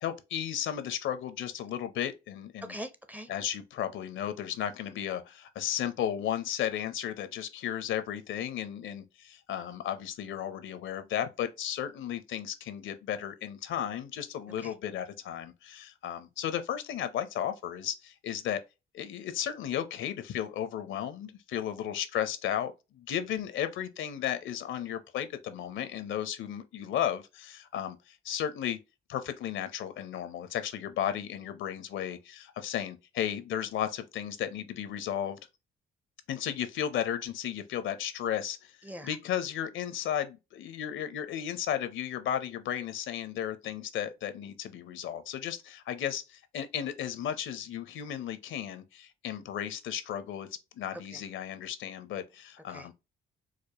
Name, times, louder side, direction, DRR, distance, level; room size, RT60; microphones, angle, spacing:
voice 1, 0.0-2.7 3.3-18.6 18.9-28.8 29.1-35.4 36.3-38.8 39.0-50.5 50.7-52.9, left 10 dB, 75° left, 0.6 m, -34 dB
voice 2, 2.7-3.3 14.6-14.7 38.8-39.2 51.1-51.2 52.7-52.9, equal, 10° right, 0.5 m, -42 dB
4.8 x 2.1 x 2.7 m
cardioid pair, 90°, 20 cm